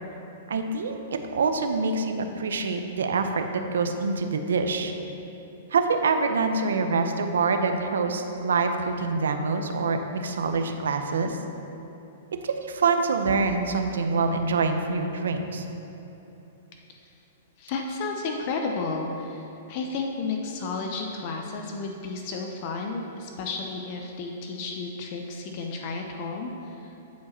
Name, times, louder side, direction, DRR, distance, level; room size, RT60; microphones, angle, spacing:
voice 1, 0.5-4.9 5.7-11.4 12.4-15.6, right 4 dB, 90° right, 6 dB, 0.6 m, -25 dB
voice 2, 17.6-27.0, left 4 dB, 45° left, 2 dB, 0.6 m, -32 dB
9.2 x 4.9 x 4.3 m, 3.0 s
hypercardioid pair, 145°, 0 cm